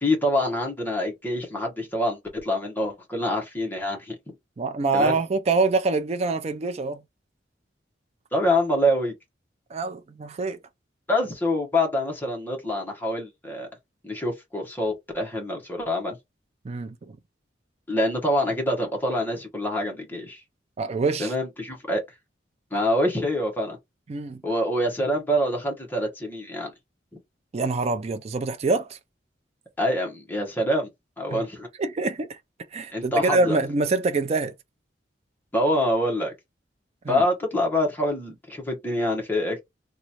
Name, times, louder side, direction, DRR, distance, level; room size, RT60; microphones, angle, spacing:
voice 1, 0.0-4.2 4.9-5.1 8.3-9.1 11.1-13.7 14.0-16.2 17.9-20.4 21.2-22.0 22.7-23.8 24.4-26.7 29.8-30.9 31.2-31.7 32.9-33.6 35.5-36.3 37.1-39.6, left 1 dB, 10° left, 1.0 m, -25 dB
voice 2, 4.6-7.0 9.7-10.6 16.6-17.2 20.8-21.3 24.1-24.4 27.5-29.0 31.3-31.4 31.8-32.4 32.7-34.5 37.0-37.2, right 3 dB, 35° right, 0.4 m, -25 dB
3.0 x 2.4 x 4.1 m
head